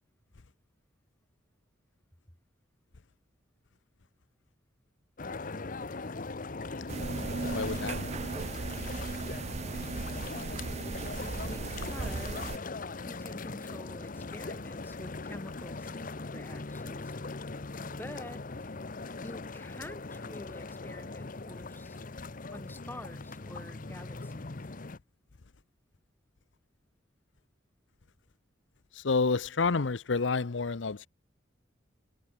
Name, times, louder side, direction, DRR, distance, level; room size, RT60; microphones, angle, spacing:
sound 1, 5.2-25.0, left 3 dB, 45° left, 0.9 m, -40 dB
sound 2, 6.9-12.6, right 4 dB, 35° right, 0.4 m, -36 dB
voice 1, 7.5-8.2 28.9-31.1, left 4 dB, 80° left, 0.8 m, -30 dB
voice 2, 11.4-12.5 13.0-17.1 17.8-18.7 19.2-22.0 22.5-24.5, left 1 dB, 10° left, 2.1 m, -48 dB
head